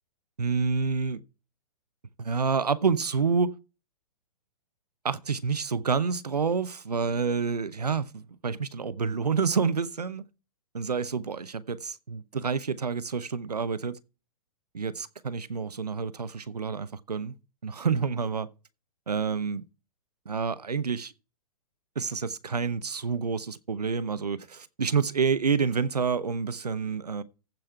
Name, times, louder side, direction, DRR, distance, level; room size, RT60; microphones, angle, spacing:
voice 1, 0.4-1.2 2.2-3.5 5.0-10.2 10.7-14.0 14.7-17.3 17.6-18.5 19.1-19.6 20.3-21.1 22.0-27.2, right 5 dB, 85° right, 0.9 m, -28 dB
15.0 x 5.7 x 4.6 m
figure-of-eight pair, 120°, 20 cm